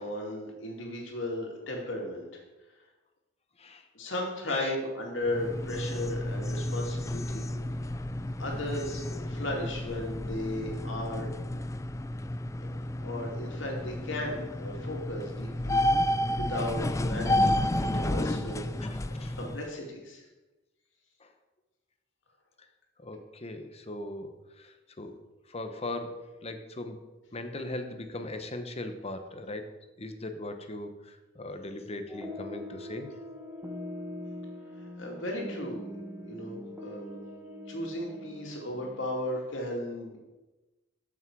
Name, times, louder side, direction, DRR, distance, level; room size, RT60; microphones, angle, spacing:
voice 1, 0.0-2.3 3.9-7.5 8.4-11.3 12.6-18.7 19.3-20.2 35.0-35.9 36.3-37.1 37.7-40.2, left 1 dB, 75° left, -1 dB, 2.5 m, -35 dB
sound 1, 5.2-19.7, left 1 dB, 15° left, 0.3 m, -31 dB
voice 2, 18.8-19.4 21.2-21.3 23.0-25.2 25.5-29.6 30.0-33.1, left 2 dB, 35° left, 7 dB, 1.0 m, -39 dB
sound 2, 32.1-39.3, left 1 dB, 10° right, 1.1 m, -42 dB
13.5 x 6.0 x 4.7 m, 1.1 s
head